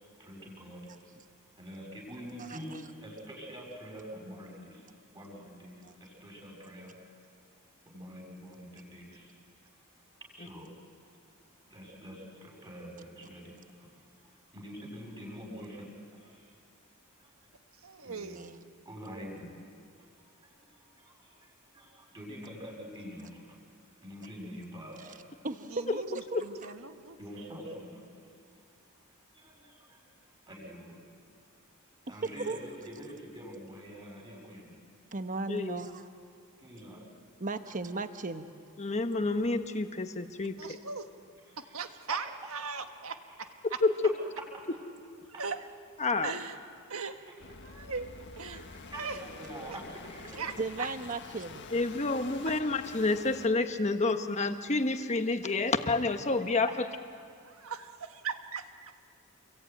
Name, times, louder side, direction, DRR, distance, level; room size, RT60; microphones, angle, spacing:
voice 1, 0.2-0.9 1.6-4.9 5.1-6.9 7.8-9.3 10.2-10.7 11.6-13.9 14.5-15.8 16.1-16.5 17.2-17.3 18.0-18.5 18.8-19.6 20.4-23.6 24.0-25.2 27.2-28.0 29.3-30.1 30.5-31.0 32.1-34.8 36.6-37.0 41.5-41.7 42.1-42.2 42.7-43.5 44.5-44.7 45.3-45.4 47.3-47.4 48.5-50.4 52.5-52.6, equal, 20° right, 0 dB, 6.6 m, -46 dB
voice 2, 2.4-2.8 5.8-5.9 18.4-18.5 25.4-26.4 32.2-32.6 35.1-36.1 37.4-38.5 50.6-51.7, right 3 dB, 40° right, 9 dB, 1.1 m, -36 dB
voice 3, 17.8-18.6 25.7-27.4 40.6-41.1 41.7-43.2 45.3-45.6 46.2-46.6 46.9-47.1 47.6-48.1 48.4-48.6 48.9-49.2 49.6-49.8 50.4-50.9 55.4-55.5 57.4-58.9, right 5 dB, 70° right, 7 dB, 1.5 m, -39 dB
voice 4, 35.5-35.8 38.8-40.6 43.8-44.1 46.0-46.3 51.7-56.9, left 3 dB, 30° left, 7 dB, 1.3 m, -29 dB
sound 1, 47.4-53.5, left 4 dB, 55° left, 1.6 m, -47 dB
28.0 x 22.5 x 9.3 m, 2.3 s
head